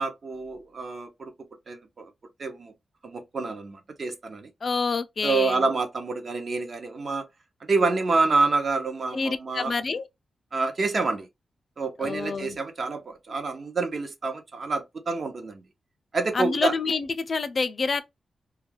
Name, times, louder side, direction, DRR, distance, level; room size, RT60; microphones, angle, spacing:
voice 1, 0.0-1.3 1.7-2.1 2.4-2.7 3.0-4.5 5.2-7.2 7.7-9.7 10.5-11.3 11.8-15.6 16.1-16.7, right 3 dB, 40° right, 0.5 m, -27 dB
voice 2, 4.6-5.6 9.1-10.1 12.0-12.6 16.3-18.0, left 4 dB, 40° left, 0.3 m, -27 dB
2.3 x 2.2 x 3.1 m
wide cardioid pair, 170°, 0 cm